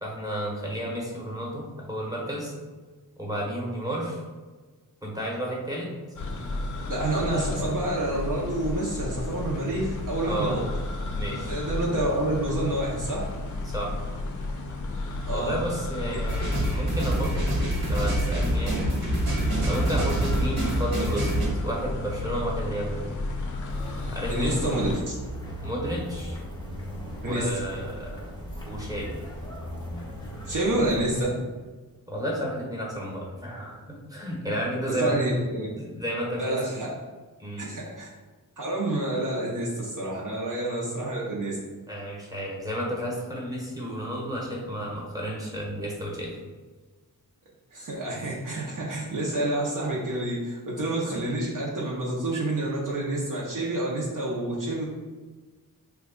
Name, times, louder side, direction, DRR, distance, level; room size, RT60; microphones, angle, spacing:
voice 1, 0.0-2.5 3.2-4.2 5.0-5.9 7.3-7.6 10.2-10.5 11.1-11.6 13.6-13.9 15.3-17.3 17.8-18.9 19.6-21.3 21.6-23.2 24.1-24.6 25.6-26.4 27.2-28.3 28.7-29.1 32.1-35.2 35.8-36.6 37.4-37.6 41.9-46.3, equal, 10° right, -3 dB, 0.9 m, -32 dB
sound 1, 6.2-25.0, left 2 dB, 55° left, 0.5 m, -33 dB
voice 2, 6.9-10.6 11.5-13.3 15.3-15.6 24.3-24.9 27.2-27.4 30.5-31.4 34.9-35.7 36.4-36.9 37.6-38.1 38.6-41.6 47.7-54.8, right 1 dB, 60° right, -5 dB, 0.7 m, -28 dB
sound 2, 16.3-21.5, right 1 dB, 75° right, 1.3 m, -26 dB
sound 3, 23.7-31.2, equal, 10° left, 0.7 m, -38 dB
3.1 x 2.3 x 3.7 m, 1.4 s
wide cardioid pair, 95°, 36 cm